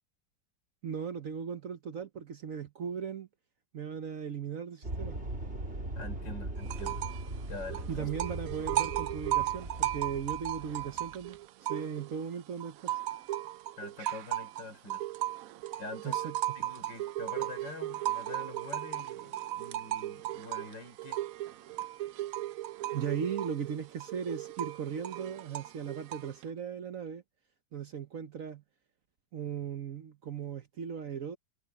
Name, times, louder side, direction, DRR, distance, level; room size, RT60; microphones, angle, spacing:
voice 1, 0.8-3.3 3.7-5.2 7.9-13.0 16.0-16.4 22.9-27.2 27.7-28.6 29.3-31.4, right 7 dB, 55° right, 1.1 m, -37 dB
sound 1, 4.8-11.3, right 1 dB, 35° right, 3.6 m, -40 dB
voice 2, 6.0-7.1 7.4-8.1 13.8-15.1 15.8-21.2, left 3 dB, 70° left, 4.7 m, -45 dB
sound 2, 6.6-7.3 7.5-12.2 12.6-26.4, right 13 dB, 75° right, 0.8 m, -36 dB
omnidirectional pair, 2.0 m